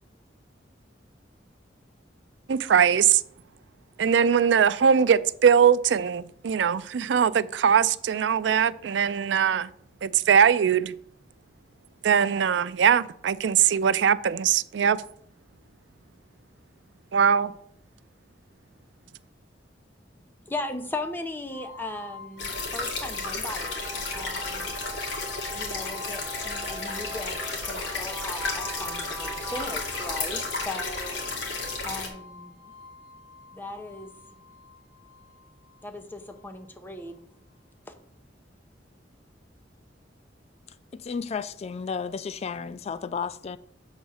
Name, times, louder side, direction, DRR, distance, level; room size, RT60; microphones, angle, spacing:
voice 1, 2.5-3.2 4.0-9.7 10.0-10.9 12.0-15.0 17.1-17.5, right 7 dB, 75° right, 0.4 m, -21 dB
voice 2, 20.4-24.7 25.5-31.2 31.8-32.6 33.5-34.1 35.8-37.2 37.9-38.0, left 2 dB, 10° left, 0.8 m, -38 dB
sound 1, 21.5-36.4, equal, 10° right, 1.6 m, -42 dB
sound 2, 22.4-32.1, left 3 dB, 70° left, 2.0 m, -33 dB
voice 3, 41.0-43.6, left 5 dB, 35° left, 0.3 m, -32 dB
7.1 x 4.1 x 6.4 m
head